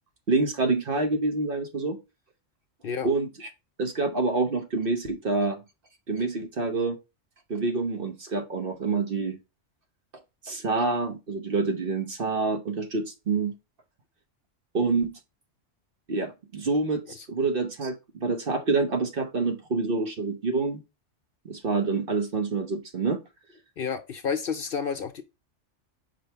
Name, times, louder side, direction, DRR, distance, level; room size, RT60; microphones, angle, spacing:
voice 1, 0.3-2.0 3.0-3.5 3.8-5.6 6.1-7.0 7.5-9.4 10.4-13.5 14.7-15.2 16.1-17.9 18.2-20.8 21.4-23.2, right 3 dB, 50° right, 1.1 m, -27 dB
voice 2, 23.8-25.2, left 6 dB, 55° left, 0.8 m, -30 dB
5.4 x 4.6 x 4.3 m
omnidirectional pair, 1.3 m